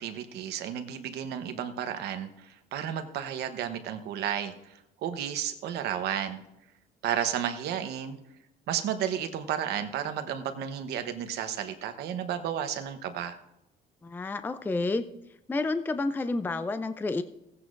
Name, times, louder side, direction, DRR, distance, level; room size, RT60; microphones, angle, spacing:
voice 1, 0.0-6.4 7.0-8.2 8.7-13.4, right 9 dB, 75° right, 8 dB, 1.0 m, -32 dB
voice 2, 14.0-15.1 15.5-17.2, left 3 dB, 10° left, 10 dB, 0.4 m, -30 dB
15.5 x 9.7 x 2.6 m, 0.84 s
cardioid pair, 110°, 17 cm